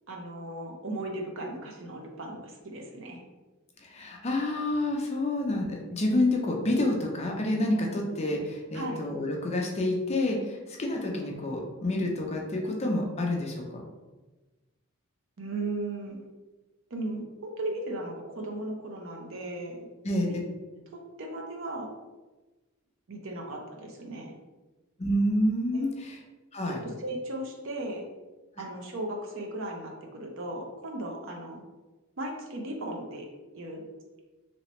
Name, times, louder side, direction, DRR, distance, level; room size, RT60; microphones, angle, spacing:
voice 1, 0.1-3.2 8.7-9.0 15.4-16.2 16.9-19.9 20.3-20.4 20.9-21.9 23.1-24.3 25.7-25.8 26.6-28.0 28.6-31.6 32.2-33.3 33.5-33.8, right 1 dB, 60° right, 2 dB, 0.6 m, -36 dB
voice 2, 3.8-13.8 20.0-20.3 25.0-26.2 26.5-26.8, left 1 dB, 30° left, 0 dB, 0.5 m, -28 dB
3.2 x 2.9 x 3.0 m, 1.2 s
head